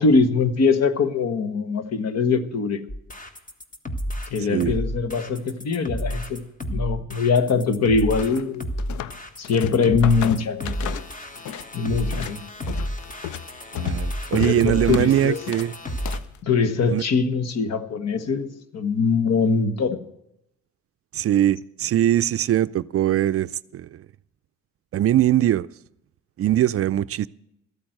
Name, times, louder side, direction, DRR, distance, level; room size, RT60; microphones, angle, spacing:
voice 1, 0.0-2.8 4.3-6.4 6.7-8.6 9.4-11.0 11.7-12.4 14.3-15.4 16.4-20.0, left 4 dB, 60° left, 1.3 m, -22 dB
sound 1, 2.9-16.2, equal, 25° left, 1.6 m, -31 dB
voice 2, 4.4-4.8 13.7-15.7 16.9-17.0 21.1-23.5 23.7-24.0 24.9-25.7 26.4-27.3, right 12 dB, 50° right, 0.4 m, -21 dB
sound 2, 8.2-9.2 9.4-11.7 12.0-16.4, left 10 dB, 75° left, 0.7 m, -32 dB
14.0 x 8.8 x 7.8 m
cardioid pair, 90°, 30 cm